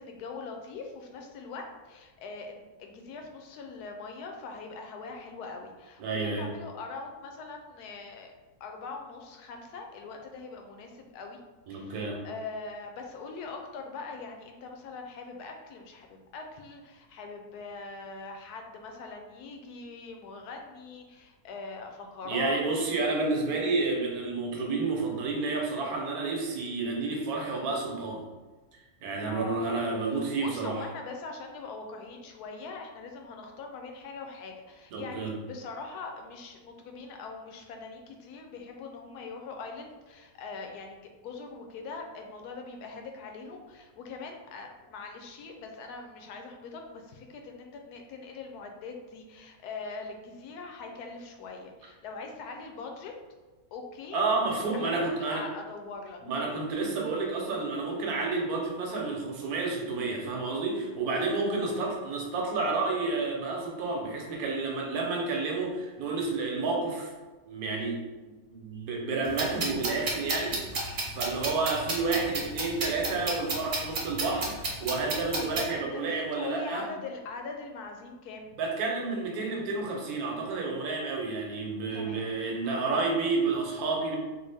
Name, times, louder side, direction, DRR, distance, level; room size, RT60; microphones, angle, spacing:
voice 1, 0.0-8.3 8.6-11.4 11.7-22.6 29.3-29.7 30.2-53.1 53.7-56.2 61.7-61.9 75.3-78.6 81.9-82.3 82.6-83.2, left 4 dB, 90° left, 3 dB, 1.1 m, -42 dB
voice 2, 6.0-6.5 11.7-12.2 22.2-28.3 29.0-30.8 34.9-35.3 54.1-55.5 56.2-67.1 67.5-68.0 68.5-76.9 78.6-84.2, right 3 dB, 75° right, 0 dB, 1.2 m, -30 dB
sound 1, 69.3-75.7, right 2 dB, 50° right, 0.6 m, -32 dB
3.4 x 2.3 x 3.3 m, 1.2 s
omnidirectional pair, 1.6 m